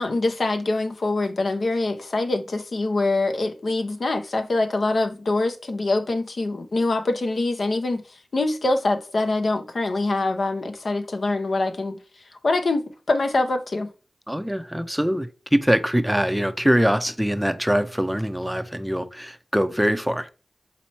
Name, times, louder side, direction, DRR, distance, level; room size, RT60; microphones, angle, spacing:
voice 1, 0.0-8.0 8.3-12.0 12.4-13.9, left 2 dB, 70° left, 0.7 m, -24 dB
voice 2, 14.3-20.3, equal, 5° right, 0.5 m, -23 dB
4.2 x 3.0 x 4.1 m
cardioid pair, 50°, 0 cm